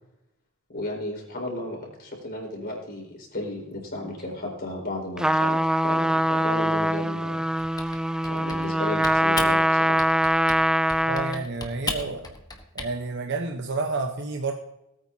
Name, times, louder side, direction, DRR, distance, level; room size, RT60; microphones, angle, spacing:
voice 1, 0.7-5.6 5.8-7.4 8.3-10.0, left 1 dB, 50° left, 0 dB, 4.3 m, -34 dB
Trumpet, 5.2-11.5, equal, 5° right, 0.3 m, -23 dB
Typing, 7.6-8.8 9.0-9.6 10.0-10.6 10.9-12.9, left 3 dB, 20° left, 1.3 m, -35 dB
voice 2, 11.1-12.3 12.7-14.5, right 3 dB, 55° right, 3 dB, 1.0 m, -30 dB
18.5 x 8.8 x 2.8 m, 0.86 s
head